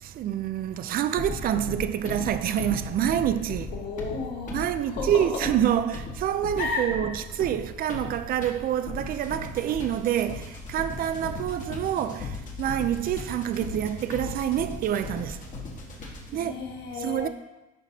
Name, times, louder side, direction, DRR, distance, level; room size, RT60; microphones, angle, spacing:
voice 1, 0.0-3.7 4.5-15.4 16.3-16.6 17.0-17.3, right 11 dB, 60° right, 0.5 m, -27 dB
sound 1, 1.2-16.4, left 3 dB, 50° left, 1.5 m, -37 dB
voice 2, 3.7-5.5 6.6-6.8 11.2-11.4 16.3-17.3, left 4 dB, 85° left, 1.5 m, -33 dB
10.5 x 5.2 x 2.8 m
cardioid pair, 110°, 17 cm